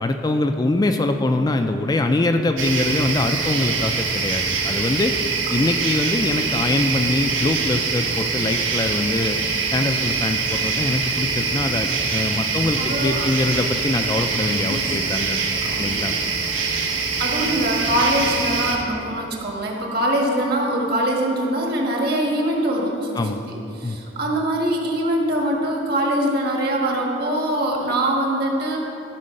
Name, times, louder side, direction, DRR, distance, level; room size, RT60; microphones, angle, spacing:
voice 1, 0.0-5.1 5.5-9.4 9.7-15.4 15.8-16.1 23.1-23.4 23.8-24.0, left 2 dB, 20° left, 6 dB, 0.3 m, -23 dB
sound 1, 2.6-18.8, right 4 dB, 80° right, 1.2 m, -24 dB
voice 2, 12.8-13.3 14.7-14.9 15.6-16.0 17.2-28.8, right 1 dB, 50° right, 0 dB, 1.5 m, -23 dB
13.5 x 4.5 x 6.4 m, 2.9 s
head